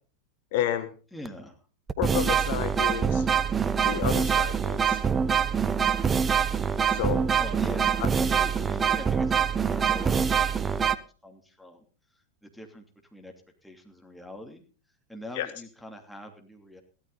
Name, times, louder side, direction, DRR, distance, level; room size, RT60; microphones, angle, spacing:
voice 1, 0.5-0.9 2.0-3.3 3.9-5.0 6.9-7.2 15.4-15.5, left 12 dB, 50° left, 11 dB, 1.1 m, -30 dB
voice 2, 1.1-1.6 7.1-11.8 12.1-12.8 13.1-13.3 13.6-14.6 15.1-16.8, left 1 dB, 5° left, 2 dB, 2.9 m, -43 dB
sound 1, 1.3-1.4 1.9-11.0, right 7 dB, 20° right, 0.7 m, -25 dB
16.0 x 13.0 x 4.1 m, 0.37 s
figure-of-eight pair, 90°, 0 cm